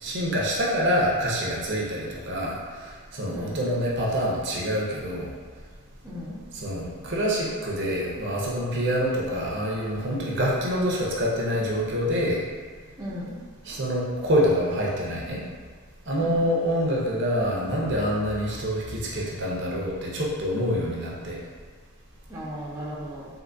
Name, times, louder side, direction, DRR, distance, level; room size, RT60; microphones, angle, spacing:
voice 1, 0.0-2.6 3.1-5.3 6.5-12.4 13.7-15.4 16.1-21.4, equal, 55° right, -4 dB, 0.7 m, -26 dB
voice 2, 6.0-6.4 13.0-13.3 16.2-16.4 22.3-23.3, equal, 15° right, -9 dB, 0.5 m, -35 dB
3.7 x 2.7 x 2.6 m, 1.5 s
head